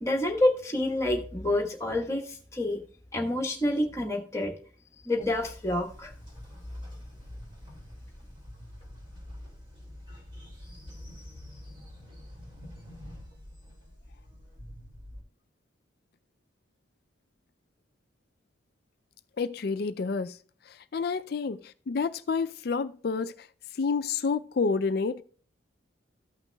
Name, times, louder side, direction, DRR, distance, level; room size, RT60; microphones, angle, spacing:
voice 1, 0.0-2.8 3.1-4.5 5.0-6.1, left 1 dB, 15° left, 1.3 m, -28 dB
Train, 5.2-15.2, left 1 dB, 25° right, 2.5 m, -47 dB
voice 2, 19.4-20.4 20.7-23.5 23.8-25.2, left 4 dB, 50° left, 0.4 m, -29 dB
14.5 x 5.9 x 2.3 m
head